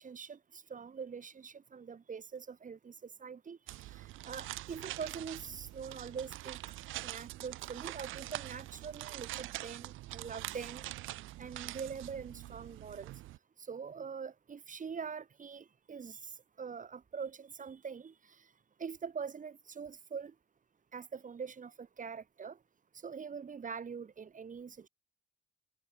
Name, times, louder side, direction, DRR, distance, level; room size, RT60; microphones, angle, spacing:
voice 1, 0.0-6.6 7.0-10.8 11.4-13.1 13.6-16.3 16.6-18.1 18.8-20.3 20.9-22.6 23.0-24.9, right 6 dB, 40° right, 3.5 m, -44 dB
sound 1, 3.7-13.4, right 16 dB, 90° right, 1.3 m, -44 dB
cardioid pair, 90°, 20 cm